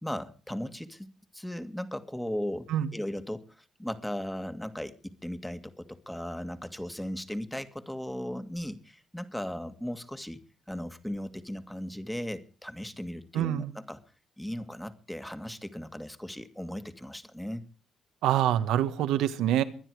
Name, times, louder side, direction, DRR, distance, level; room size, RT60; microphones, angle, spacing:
voice 1, 0.0-2.7 2.9-10.4 10.7-14.0 14.4-17.6, equal, 5° left, 10 dB, 2.0 m, -37 dB
voice 2, 13.3-13.7 18.2-19.6, right 11 dB, 90° right, 11 dB, 1.5 m, -25 dB
23.0 x 10.0 x 4.9 m, 0.40 s
cardioid pair, 90°, 0 cm